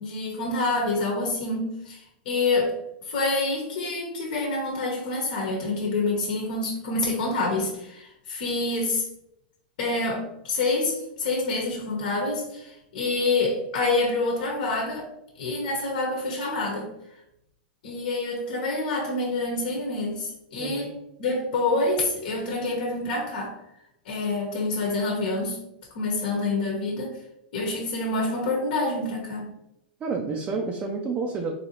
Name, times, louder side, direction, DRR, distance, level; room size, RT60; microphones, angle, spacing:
voice 1, 0.0-2.8 3.0-9.0 9.8-15.1 15.4-16.9 17.8-20.9 21.2-23.6 24.0-25.6 25.9-27.2 27.5-29.5, left 2 dB, 65° left, 0 dB, 1.1 m, -27 dB
voice 2, 30.0-31.5, right 4 dB, 25° right, 1 dB, 0.4 m, -29 dB
4.1 x 2.8 x 2.9 m, 0.80 s
hypercardioid pair, 135°, 5 cm